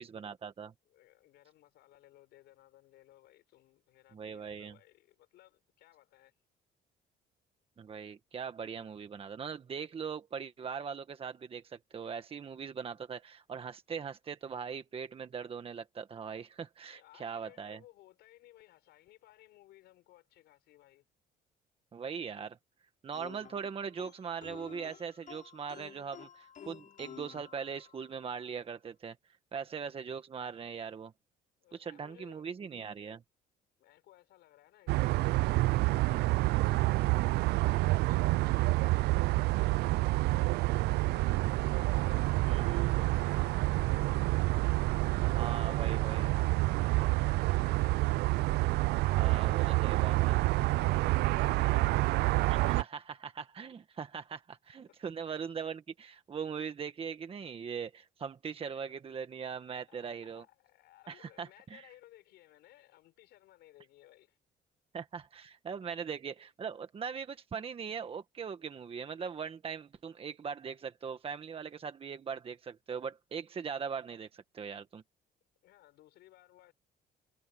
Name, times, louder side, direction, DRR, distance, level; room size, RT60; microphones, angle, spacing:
voice 1, 0.0-0.7 4.1-4.8 7.8-17.8 21.9-22.6 23.0-29.2 29.5-31.1 31.7-33.2 42.4-43.3 45.2-46.4 49.2-50.4 52.5-60.4 61.1-61.9 64.9-75.0, right 6 dB, 35° right, 1.4 m, -40 dB
voice 2, 0.9-6.3 16.9-21.1 31.6-32.5 33.8-41.5 42.0-44.4 44.9-48.0 49.0-52.0 54.9-55.0 59.9-64.4 65.9-66.0 75.6-76.7, left 15 dB, 80° left, 5.6 m, -60 dB
sound 1, 23.1-28.2, left 8 dB, 50° left, 4.6 m, -52 dB
sound 2, 34.9-52.8, right 20 dB, 80° right, 0.4 m, -28 dB
cardioid pair, 110°, 17 cm